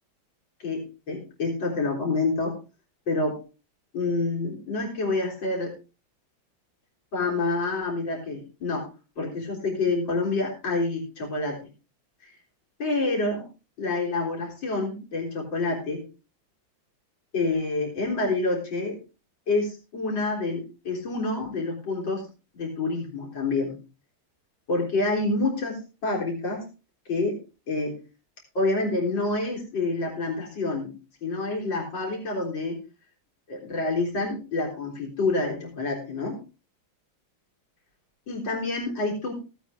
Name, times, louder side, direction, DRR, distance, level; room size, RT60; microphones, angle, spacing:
voice 1, 0.6-2.6 3.1-3.4 3.9-5.7 7.1-8.9 9.2-11.6 12.2-12.3 12.8-13.5 13.8-16.0 17.3-19.0 19.5-22.3 22.5-23.8 24.7-26.7 27.1-27.3 27.7-27.9 28.5-30.9 31.2-32.8 33.5-36.4 38.3-39.3, left 3 dB, 65° left, -1 dB, 4.4 m, -27 dB
16.5 x 8.7 x 3.6 m, 0.31 s
omnidirectional pair, 2.2 m